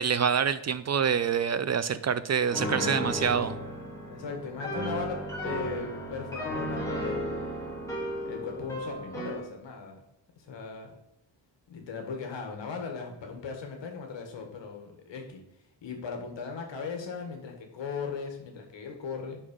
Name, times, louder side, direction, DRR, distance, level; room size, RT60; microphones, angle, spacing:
voice 1, 0.0-3.6, right 7 dB, 40° right, 14 dB, 0.4 m, -26 dB
Piano, 2.5-9.4, equal, 5° left, 2.6 m, -34 dB
voice 2, 4.1-7.6 8.2-10.0 10.4-10.9 11.7-15.4 15.8-19.4, left 5 dB, 75° left, 3 dB, 1.8 m, -38 dB
6.5 x 5.6 x 5.4 m, 0.88 s
wide cardioid pair, 140°, 44 cm